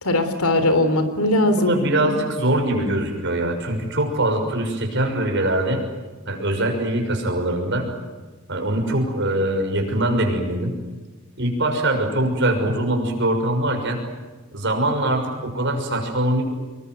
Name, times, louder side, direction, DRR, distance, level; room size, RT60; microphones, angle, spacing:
voice 1, 0.0-1.7 2.0-2.1 2.6-2.9, left 1 dB, 80° left, 10 dB, 3.6 m, -20 dB
voice 2, 1.5-5.8 6.3-7.9 8.5-10.7 11.4-14.0 14.5-16.4, right 1 dB, 55° right, 4 dB, 6.3 m, -22 dB
26.0 x 23.0 x 9.5 m, 1.3 s
head